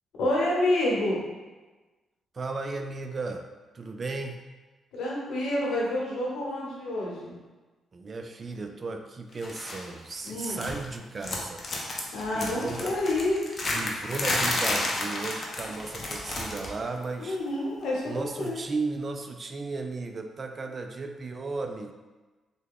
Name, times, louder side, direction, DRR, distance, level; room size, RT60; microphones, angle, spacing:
voice 1, 0.2-1.2 4.9-7.4 10.2-10.6 12.1-13.4 17.2-18.6, left 1 dB, 80° left, -4 dB, 1.0 m, -28 dB
voice 2, 2.3-3.4 3.7-4.4 7.9-11.6 12.0-13.0 13.7-17.4 18.1-21.9, right 3 dB, 40° right, 5 dB, 0.3 m, -35 dB
sound 1, 9.4-9.9 10.1-10.9 11.2-16.8 17.0-17.3 18.4-18.5, left 2 dB, 40° left, 0.6 m, -31 dB
3.4 x 2.2 x 3.5 m, 1.2 s
cardioid pair, 90°, 0 cm